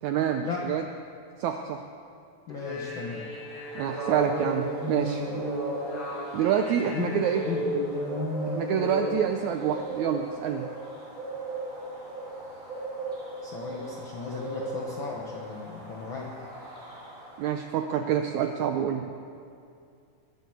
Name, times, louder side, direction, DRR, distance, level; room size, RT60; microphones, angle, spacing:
voice 1, 0.0-0.8 1.4-1.8 3.7-5.2 6.3-7.4 8.5-10.7 17.4-19.1, right 9 dB, 85° right, 5 dB, 1.6 m, -27 dB
voice 2, 2.5-3.3 6.8-7.2 7.4-7.7 13.4-16.3, left 5 dB, 75° left, -2 dB, 1.1 m, -35 dB
sound 1, 2.5-9.2, equal, 35° left, 4.1 m, -33 dB
sound 2, 3.1-17.8, right 2 dB, 20° right, 3.7 m, -40 dB
21.5 x 7.9 x 7.9 m, 2.4 s
omnidirectional pair, 4.1 m